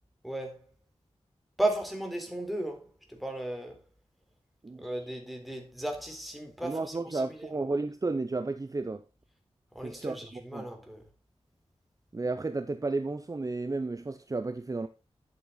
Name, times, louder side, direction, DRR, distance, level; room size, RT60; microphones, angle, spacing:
voice 1, 0.2-0.6 1.6-3.8 4.8-7.5 9.7-11.1, right 1 dB, ahead, 3.8 m, -35 dB
voice 2, 6.6-9.0 9.8-10.7 12.1-14.9, right 3 dB, 30° right, 0.8 m, -33 dB
11.5 x 7.6 x 4.0 m
wide cardioid pair, 80°, 11 cm